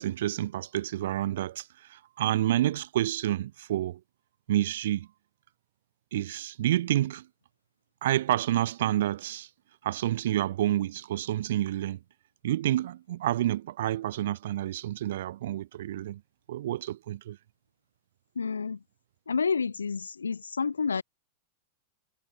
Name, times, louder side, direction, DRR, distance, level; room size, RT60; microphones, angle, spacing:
voice 1, 0.0-4.0 4.5-5.1 6.1-7.3 8.0-9.5 9.8-12.0 12.4-16.2 16.5-17.4, right 13 dB, 60° right, 0.3 m, -29 dB
voice 2, 18.4-18.8 19.3-21.0, left 5 dB, 75° left, 0.3 m, -29 dB
figure-of-eight pair, 90°, 0 cm